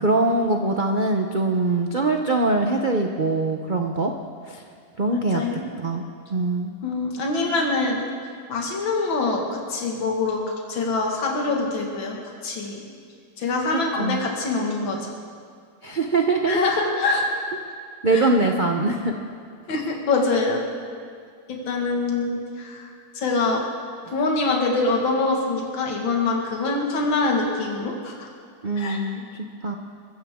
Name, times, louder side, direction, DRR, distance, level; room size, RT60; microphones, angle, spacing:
voice 1, 0.0-4.1 4.5-4.6 5.0-5.4 5.8-6.0 6.3-6.7 13.7-14.3 15.8-16.6 18.0-19.1 28.6-29.8, right 2 dB, 65° right, 3 dB, 0.4 m, -23 dB
voice 2, 5.1-5.7 6.8-8.0 8.5-12.2 12.4-12.8 13.4-15.1 16.5-17.2 18.1-18.3 19.7-20.6 21.5-23.7 24.0-28.3 28.8-29.0, left 3 dB, 75° left, 0 dB, 2.6 m, -24 dB
22.0 x 14.5 x 3.6 m, 2.1 s
omnidirectional pair, 2.2 m